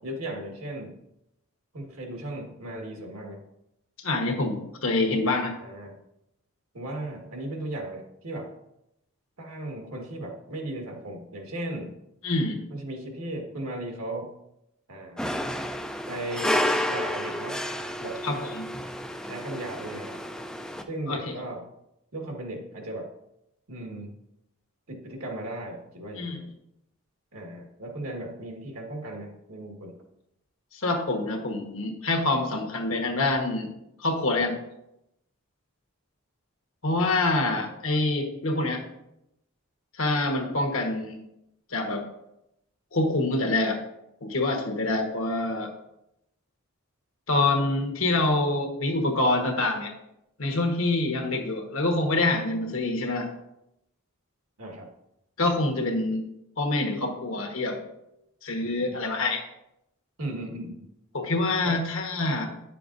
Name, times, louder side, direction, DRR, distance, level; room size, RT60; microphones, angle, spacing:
voice 1, 0.0-1.0 1.7-3.4 5.6-6.0 6.7-8.5 9.4-12.0 12.7-14.3 14.9-15.4 16.1-17.6 18.0-18.2 19.2-20.2 20.9-21.6 22.1-23.1 23.7-24.2 24.9-26.5 27.3-30.0 54.6-54.9 58.9-59.0 60.2-60.9 61.6-61.8, right 1 dB, 75° right, 1 dB, 1.6 m, -36 dB
voice 2, 4.0-5.5 12.2-12.6 18.2-18.7 21.1-21.4 26.2-26.4 30.7-33.7 34.0-34.6 36.8-38.8 39.9-41.2 41.7-42.1 42.9-43.8 44.2-45.7 47.3-49.9 50.4-53.3 55.4-56.2 56.6-57.8 58.4-59.4 61.1-62.5, left 2 dB, 70° left, 3 dB, 1.2 m, -26 dB
sound 1, 15.2-20.8, equal, 5° left, 0.3 m, -30 dB
10.0 x 6.8 x 2.6 m, 0.83 s
head